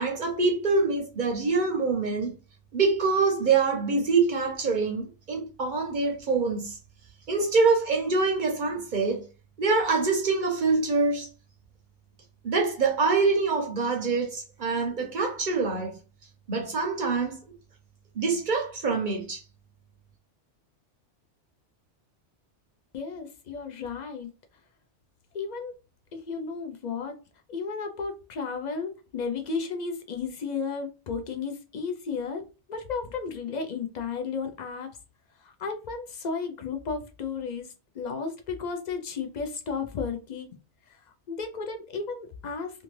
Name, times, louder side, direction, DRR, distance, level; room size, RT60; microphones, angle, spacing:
voice 1, 0.0-2.3 2.7-6.8 7.3-9.3 9.6-11.3 12.4-16.0 16.5-17.4 18.1-19.4, right 4 dB, 55° right, 0.6 m, -25 dB
voice 2, 22.9-24.3 25.3-25.7 26.1-27.2 27.5-32.4 32.7-34.9 35.4-40.5 40.9-41.0 41.3-42.8, left 5 dB, 55° left, 0.5 m, -33 dB
2.6 x 2.4 x 3.0 m
omnidirectional pair, 1.2 m